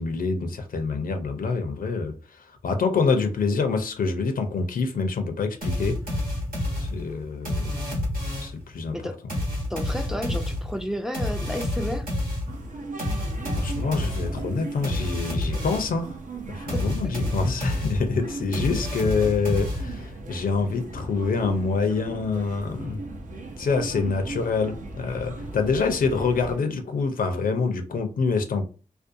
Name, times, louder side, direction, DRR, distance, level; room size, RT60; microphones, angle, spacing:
voice 1, 0.0-6.0 6.8-7.8 8.4-9.0 13.6-16.2 16.5-23.0 23.6-28.6, left 4 dB, 75° left, 0.5 m, -26 dB
sound 1, 5.6-8.7 9.3-16.0 16.7-20.2, left 1 dB, 80° right, 1.1 m, -29 dB
voice 2, 7.7-8.0 8.9-9.2 9.7-12.1 16.7-16.9, equal, 5° right, 0.4 m, -32 dB
sound 2, 12.5-26.6, right 3 dB, 60° right, 0.6 m, -38 dB
2.5 x 2.2 x 2.6 m
cardioid pair, 45°, 15 cm